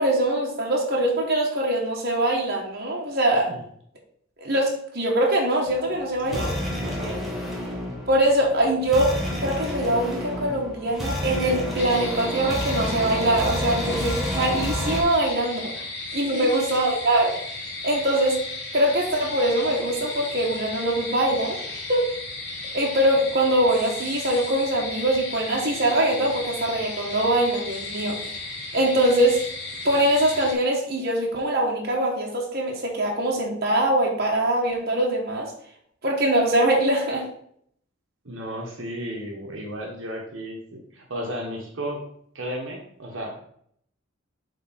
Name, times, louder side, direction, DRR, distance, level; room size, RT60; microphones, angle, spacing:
voice 1, 0.0-3.5 4.4-6.5 8.1-15.7 16.1-17.3 17.8-18.4 18.7-21.6 21.9-22.0 22.7-28.2 28.7-29.4 29.8-35.5 36.0-37.3, right 1 dB, 50° right, -2 dB, 1.4 m, -23 dB
sound 1, 5.7-15.0, equal, ahead, 1.4 m, -30 dB
voice 2, 6.2-7.3 15.8-15.9 16.3-16.7 38.2-42.1 42.3-43.4, equal, 70° right, 0 dB, 1.3 m, -34 dB
sound 2, 11.8-30.5, left 3 dB, 55° left, 1.7 m, -35 dB
7.3 x 3.7 x 4.3 m, 0.66 s
head